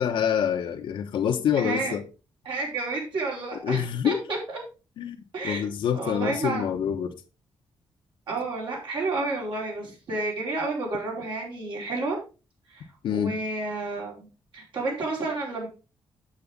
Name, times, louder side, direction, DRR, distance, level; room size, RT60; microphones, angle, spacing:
voice 1, 0.0-2.0 3.6-4.2 5.0-5.2 5.4-7.1 13.0-13.3, left 8 dB, 85° left, 1.1 m, -26 dB
voice 2, 1.6-2.0 2.4-4.6 5.3-6.8 8.3-12.2 12.7-12.8 13.1-14.3 14.5-15.7, right 3 dB, 70° right, 4.5 m, -30 dB
8.6 x 6.9 x 3.7 m
cardioid pair, 130°, 9 cm